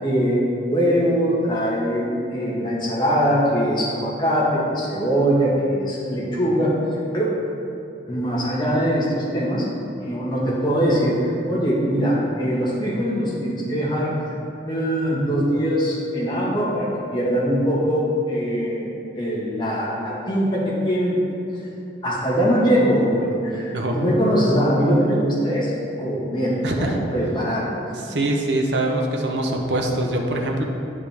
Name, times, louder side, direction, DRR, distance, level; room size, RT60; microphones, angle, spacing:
voice 1, 0.0-6.9 7.1-7.3 8.1-9.6 10.1-14.1 14.7-21.2 21.5-21.7 22.0-27.8, equal, 25° left, -6 dB, 1.4 m, -22 dB
voice 2, 26.6-27.0 28.1-30.6, right 1 dB, 70° right, 1 dB, 0.7 m, -23 dB
9.1 x 5.0 x 3.5 m, 2.8 s
head